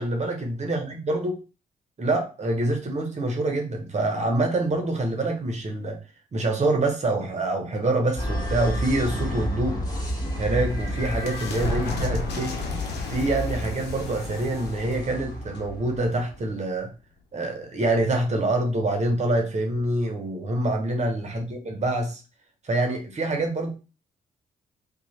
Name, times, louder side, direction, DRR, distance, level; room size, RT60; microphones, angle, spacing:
voice 1, 0.0-1.4 2.0-6.0 6.3-9.8 10.4-12.6 13.1-16.9 17.3-22.2 22.7-23.7, right 2 dB, 45° right, 3 dB, 1.0 m, -26 dB
sound 1, 8.2-16.4, equal, 25° left, 1.6 m, -31 dB
sound 2, 10.1-16.6, left 2 dB, 90° left, 0.7 m, -34 dB
3.0 x 2.4 x 4.2 m, 0.32 s
cardioid pair, 70°, 17 cm